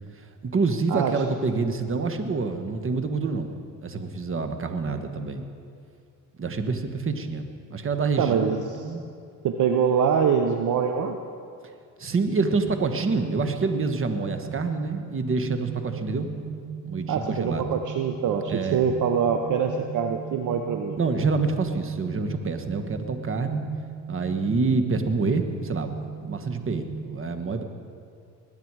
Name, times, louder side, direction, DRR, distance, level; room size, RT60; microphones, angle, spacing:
voice 1, 0.2-5.5 6.4-9.0 12.0-16.3 16.8-17.7 18.5-18.8 21.0-23.6 24.1-25.9 26.2-27.6, right 4 dB, 35° right, 7 dB, 1.5 m, -27 dB
voice 2, 8.2-8.8 9.4-11.2 17.1-21.0, right 7 dB, 55° right, 5 dB, 0.9 m, -24 dB
sound 1, 12.0-27.0, right 6 dB, 70° right, 3.0 m, -38 dB
21.0 x 9.3 x 4.8 m, 2.3 s
supercardioid pair, 75°, 37 cm